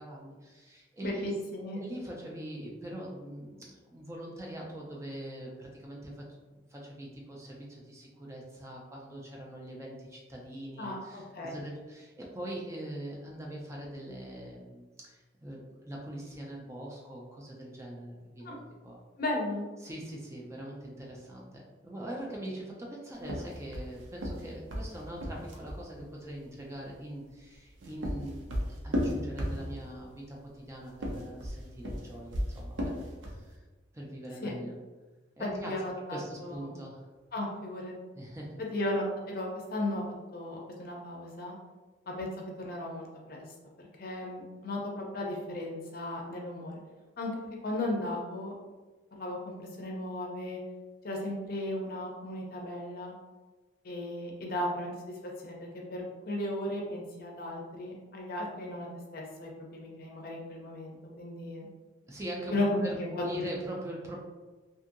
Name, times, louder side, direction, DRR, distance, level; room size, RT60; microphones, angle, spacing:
voice 1, 0.0-1.3 1.7-19.0 19.8-33.6 33.9-34.7 35.4-35.8 36.1-37.1 38.2-38.6 62.1-63.0 63.2-64.2, right 1 dB, 15° right, -2 dB, 0.3 m, -42 dB
voice 2, 1.0-1.8 10.8-11.6 18.4-18.5 19.2-19.7 34.4-34.5 35.6-36.7 37.3-37.9 38.7-40.0 40.3-41.5 42.1-42.3 42.6-43.4 44.0-46.8 47.2-47.3 47.6-48.5 49.2-50.6 51.0-53.1 53.8-55.1 55.4-55.5 55.9-61.7 62.5-63.4, left 1 dB, 50° left, -1 dB, 0.5 m, -35 dB
sound 1, 23.2-25.8 27.5-30.0 30.9-33.5, equal, 75° right, 0.5 m, -34 dB
2.7 x 2.6 x 2.5 m, 1.3 s
head